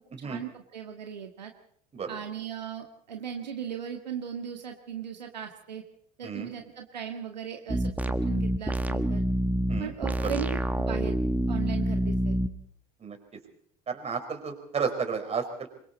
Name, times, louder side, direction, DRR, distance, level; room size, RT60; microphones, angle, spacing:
voice 1, 0.2-1.5 2.1-5.8 6.2-9.2 9.8-11.2 11.5-12.4, right 8 dB, 80° right, 4 dB, 1.8 m, -38 dB
sound 1, 7.7-12.5, right 1 dB, 5° right, 1.5 m, -27 dB
voice 2, 13.9-15.7, right 5 dB, 30° right, 5 dB, 5.0 m, -32 dB
27.0 x 23.0 x 4.2 m, 0.65 s
figure-of-eight pair, 70°, 21 cm